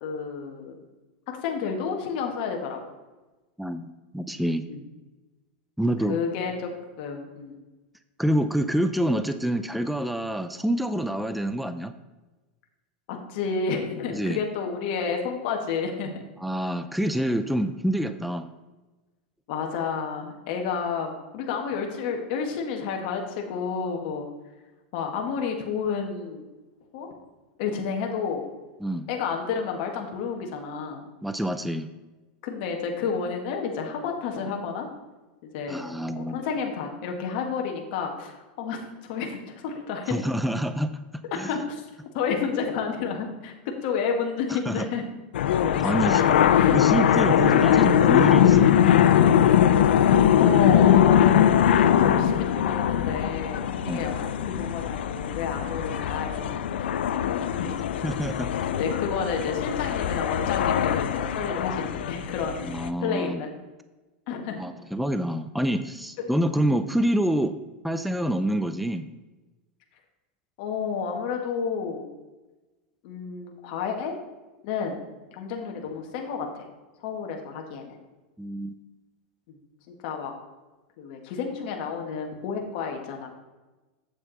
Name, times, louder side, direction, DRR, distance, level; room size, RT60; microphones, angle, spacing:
voice 1, 0.0-0.8 1.3-2.8 4.7-4.8 6.1-6.7 7.0-7.6 13.1-16.1 19.5-24.3 24.9-26.4 26.9-27.1 27.6-28.5 29.1-31.0 32.4-34.9 35.4-35.8 36.1-40.5 41.3-41.9 42.1-45.0 46.0-46.7 47.4-47.6 49.5-49.6 50.4-51.6 51.8-56.7 57.4-57.7 58.8-62.7 63.0-63.6 64.3-64.6 66.2-66.3 66.6-66.7 70.6-72.0 73.0-74.1 74.6-75.0 75.3-76.7 77.0-78.0 79.9-80.3 81.0-83.3, left 6 dB, 60° left, 2 dB, 1.7 m, -30 dB
voice 2, 3.6-4.7 5.8-6.2 8.2-11.9 14.1-14.4 16.4-18.5 28.8-29.1 31.2-31.9 35.7-36.4 40.1-41.0 41.3-41.5 44.5-44.9 45.8-46.2 46.7-48.7 52.0-52.3 53.8-54.0 58.0-58.5 62.6-63.4 64.6-67.6 67.8-69.1 78.4-78.8, right 1 dB, ahead, 10 dB, 0.4 m, -27 dB
sound 1, 45.3-62.9, left 9 dB, 85° left, 0.5 m, -21 dB
8.2 x 7.2 x 4.1 m, 1.2 s
supercardioid pair, 125°, 6 cm